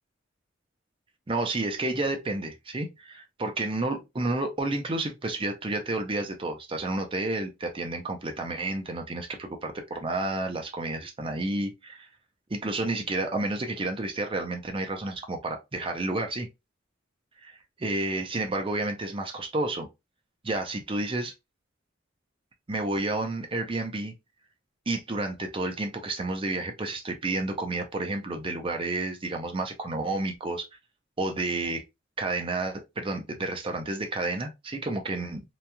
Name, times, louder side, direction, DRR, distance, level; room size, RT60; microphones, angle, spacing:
voice 1, 1.3-12.1 12.5-16.5 17.4-17.5 17.8-19.9 20.4-21.3 22.7-24.1 24.9-30.7 31.2-31.8 32.2-35.4, right 2 dB, 30° right, 0.6 m, -30 dB
2.9 x 2.3 x 2.6 m
head